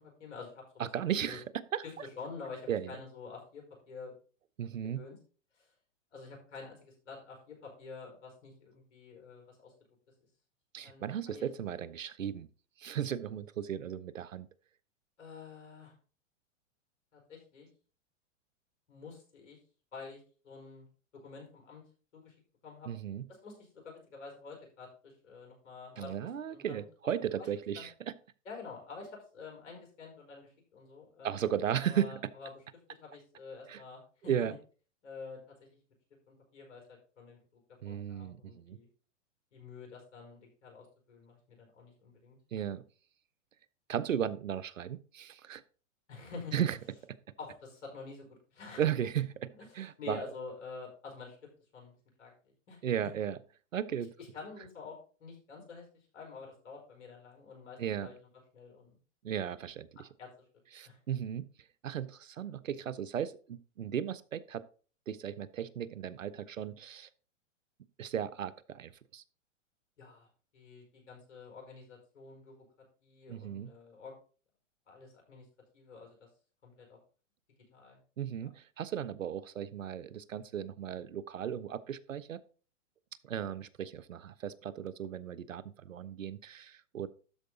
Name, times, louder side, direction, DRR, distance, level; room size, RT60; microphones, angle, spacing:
voice 1, 0.0-1.4 1.8-4.1 4.9-5.2 5.5-5.7 6.1-9.7 10.8-11.5 15.2-15.9 17.1-17.7 18.9-19.6 19.9-20.8 21.1-21.8 22.1-22.3 22.6-22.9 23.3-26.8 27.3-27.5 27.7-27.9 28.4-32.6 32.9-34.5 35.0-35.8 36.3-38.9 39.5-42.4 46.1-46.6 47.4-48.9 49.6-51.4 51.7-51.9 52.2-52.8 54.2-55.9 56.1-58.2 58.5-59.0 60.2-60.3 60.8-61.0 70.0-72.5 73.0-74.1 74.9-75.5 75.7-76.3 76.6-77.0 77.7-78.0, left 4 dB, 70° left, 1 dB, 5.1 m, -48 dB
voice 2, 0.8-1.8 2.7-2.9 4.6-5.0 10.7-12.5 12.8-14.5 22.9-23.2 26.0-27.9 31.2-32.2 33.7-33.8 34.3-34.6 37.8-38.8 42.5-42.8 43.9-45.6 46.5-46.8 48.8-50.2 52.8-53.4 53.7-54.1 57.8-58.1 59.2-60.1 60.7-61.5 61.8-64.7 65.1-67.1 68.0-69.2 73.3-73.7 78.2-82.4 83.2-87.1, right 9 dB, 90° right, 18 dB, 0.8 m, -35 dB
12.5 x 4.8 x 3.9 m, 0.39 s
hypercardioid pair, 120°, 38 cm